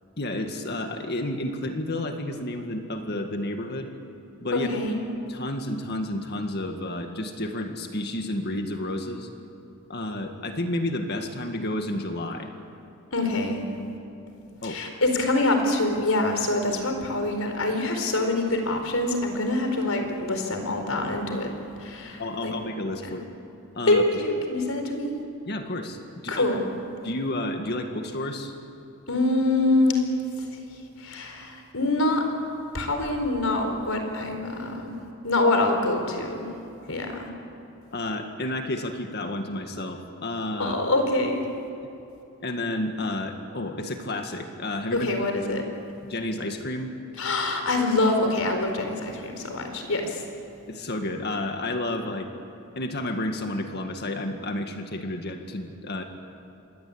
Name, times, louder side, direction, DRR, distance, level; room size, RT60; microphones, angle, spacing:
voice 1, 0.2-3.9 4.4-4.7 5.3-9.3 9.9-12.5 14.6-14.8 22.2-23.3 23.8-24.0 25.5-26.0 26.2-26.5 27.0-28.5 37.9-40.8 42.4-45.1 46.0-46.9 50.7-52.3 52.8-56.0, left 1 dB, 50° left, 5 dB, 1.9 m, -31 dB
voice 2, 4.5-5.0 13.1-13.7 14.6-21.5 21.8-22.5 23.0-23.2 23.9-25.2 26.3-26.7 29.1-30.0 30.4-30.5 31.0-32.3 32.7-35.0 35.2-36.5 36.9-37.3 40.6-41.5 44.9-45.6 47.2-50.2, left 2 dB, 85° left, 5 dB, 4.5 m, -25 dB
27.0 x 22.0 x 8.7 m, 2.8 s
head